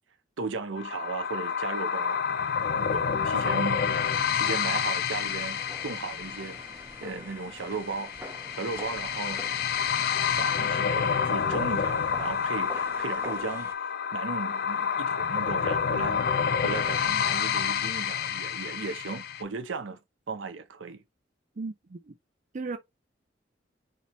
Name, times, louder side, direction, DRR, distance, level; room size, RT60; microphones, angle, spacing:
voice 1, 0.4-2.2 2.8-3.8 4.3-6.6 7.0-8.1 8.5-9.5 10.3-20.0 20.3-21.0, right 4 dB, 85° right, 0.7 m, -36 dB
sound 1, 0.8-19.4, left 7 dB, 50° left, 0.4 m, -29 dB
sound 2, 5.1-13.7, equal, 15° right, 1.0 m, -45 dB
voice 2, 21.6-22.1 22.5-22.8, right 3 dB, 40° right, 0.4 m, -36 dB
4.4 x 2.8 x 3.0 m
head